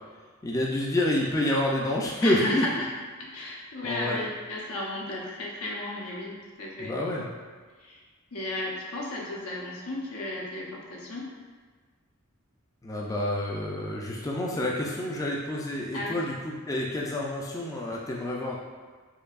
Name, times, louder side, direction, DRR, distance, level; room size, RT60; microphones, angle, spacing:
voice 1, 0.4-2.6 3.8-4.2 6.8-7.3 12.8-18.6, left 1 dB, 15° left, -3 dB, 0.3 m, -28 dB
voice 2, 2.2-2.9 3.2-7.0 7.8-8.0 8.3-11.3 15.9-16.2, left 1 dB, 80° left, -3 dB, 0.7 m, -34 dB
4.5 x 2.6 x 2.4 m, 1.5 s
head